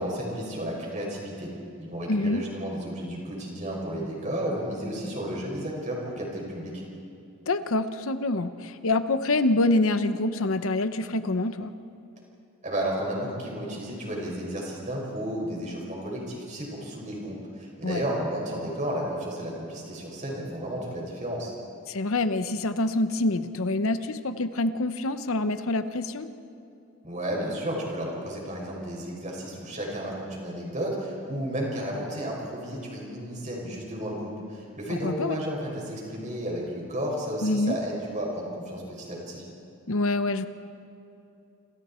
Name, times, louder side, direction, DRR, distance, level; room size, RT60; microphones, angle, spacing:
voice 1, 0.0-1.5 1.8-6.8 12.6-21.5 27.0-39.4, equal, 35° right, -2 dB, 5.9 m, -33 dB
voice 2, 2.1-2.4 7.5-11.7 17.8-18.0 21.9-26.3 34.9-35.4 37.4-37.7 39.9-40.5, left 2 dB, 70° left, 10 dB, 0.9 m, -26 dB
28.0 x 26.5 x 4.4 m, 2.7 s
head